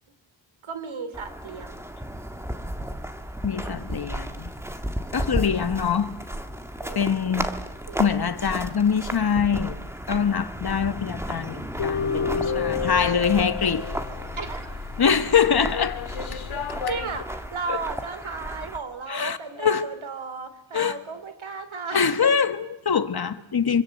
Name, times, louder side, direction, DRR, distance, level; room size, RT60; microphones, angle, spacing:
voice 1, 0.6-1.8 6.8-7.5 7.9-8.1 14.4-14.8 16.9-22.3, right 4 dB, 80° right, 3.0 m, -35 dB
sound 1, 1.1-18.8, equal, 5° right, 1.7 m, -34 dB
voice 2, 3.4-4.5 5.1-6.1 6.9-7.5 8.0-9.8 10.1-13.8 15.0-16.0 17.7-17.8 19.1-19.8 20.7-21.0 21.9-23.8, left 7 dB, 50° left, 1.5 m, -24 dB
sound 2, 11.7-17.2, left 7 dB, 90° left, 2.1 m, -30 dB
25.5 x 24.5 x 7.7 m
wide cardioid pair, 120°, 47 cm